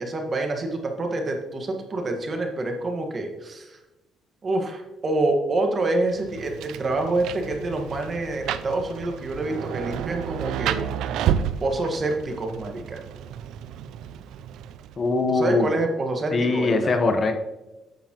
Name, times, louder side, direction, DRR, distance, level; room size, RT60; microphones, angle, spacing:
voice 1, 0.0-3.8 4.4-10.8 11.6-13.0 15.3-16.9, right 2 dB, 40° right, 3 dB, 1.6 m, -27 dB
Rain, 6.1-15.1, right 9 dB, 85° right, 0.4 m, -31 dB
voice 2, 15.0-15.7 16.3-17.3, left 3 dB, 40° left, 6 dB, 1.1 m, -21 dB
9.5 x 7.3 x 3.0 m, 1.0 s
cardioid pair, 90°, 0 cm